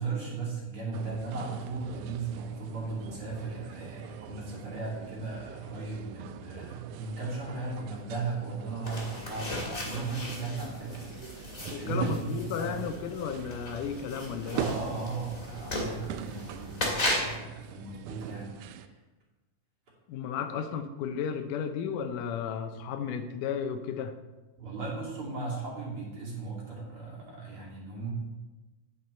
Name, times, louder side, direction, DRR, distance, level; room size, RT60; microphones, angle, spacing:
voice 1, 0.0-12.8 14.5-19.0 24.6-28.1, right 3 dB, 45° right, -5 dB, 3.5 m, -36 dB
sound 1, 0.9-18.9, right 10 dB, 85° right, 2.0 m, -43 dB
sound 2, 8.8-17.4, left 1 dB, 25° left, 2.5 m, -36 dB
voice 2, 11.7-14.7 20.1-24.2, left 7 dB, 85° left, 9 dB, 2.3 m, -34 dB
9.3 x 9.2 x 4.3 m, 1.1 s
omnidirectional pair, 3.6 m